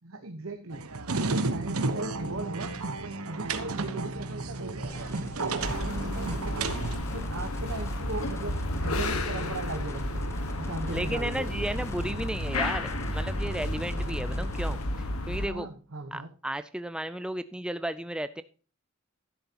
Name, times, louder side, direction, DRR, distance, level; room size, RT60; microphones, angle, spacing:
voice 1, 0.0-0.8 1.1-2.7 3.0-6.9 7.1-10.3 10.6-11.8 14.3-14.4 15.4-16.3, right 2 dB, 70° right, 4 dB, 1.1 m, -38 dB
sound 1, 0.7-7.0, right 3 dB, 90° right, 1.2 m, -32 dB
sound 2, 4.8-14.8, left 1 dB, 15° left, 1.0 m, -45 dB
sound 3, 5.6-15.5, left 1 dB, 90° left, 1.5 m, -32 dB
voice 2, 10.9-15.7 16.1-18.4, right 1 dB, 5° right, 12 dB, 0.4 m, -34 dB
12.0 x 10.5 x 2.9 m, 0.37 s
head